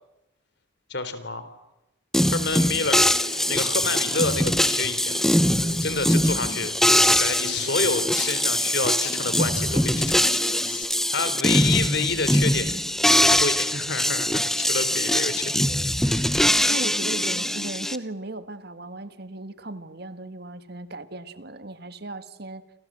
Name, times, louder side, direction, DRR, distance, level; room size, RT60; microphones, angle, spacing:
voice 1, 0.9-1.5 2.2-3.1 3.5-5.1 5.8-6.7 7.1-10.3 11.1-12.8 13.2-15.5 16.0-16.5, left 4 dB, 60° left, 11 dB, 3.7 m, -28 dB
sound 1, 2.1-18.0, equal, ahead, 1.0 m, -22 dB
Human voice / Acoustic guitar, 2.8-10.8, left 4 dB, 80° left, 2.6 m, -41 dB
voice 2, 16.7-22.6, right 2 dB, 55° right, 11 dB, 1.7 m, -36 dB
28.5 x 26.5 x 7.7 m, 0.92 s
head